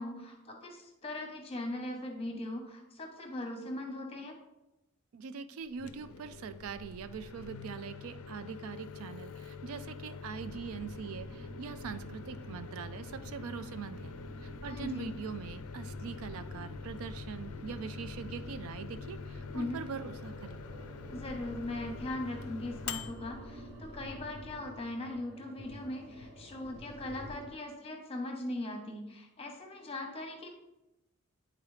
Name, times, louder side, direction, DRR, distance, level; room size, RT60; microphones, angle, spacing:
voice 1, 0.0-4.4 14.6-15.1 19.5-19.8 21.1-30.5, left 1 dB, 25° left, 3 dB, 0.9 m, -39 dB
voice 2, 5.1-14.1 14.4-20.6, right 6 dB, 70° right, 11 dB, 0.3 m, -42 dB
Microwave oven, 5.6-24.5, left 5 dB, 75° left, 0.4 m, -45 dB
sound 1, 10.4-27.5, equal, 50° right, 0.8 m, -49 dB
9.5 x 3.9 x 3.2 m, 0.94 s
head